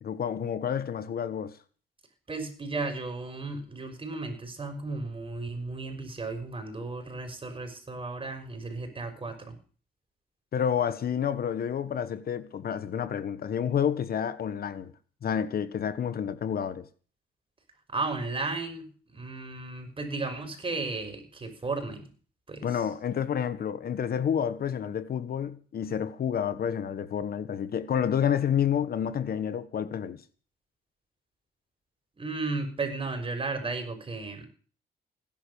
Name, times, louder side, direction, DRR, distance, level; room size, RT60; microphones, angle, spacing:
voice 1, 0.0-1.5 10.5-14.9 15.2-16.9 22.6-30.2, left 8 dB, 60° left, 1.3 m, -29 dB
voice 2, 2.3-9.6 17.9-22.1 22.5-22.8 32.2-34.5, right 3 dB, 30° right, 5.8 m, -34 dB
17.0 x 11.0 x 7.0 m
cardioid pair, 70°, 18 cm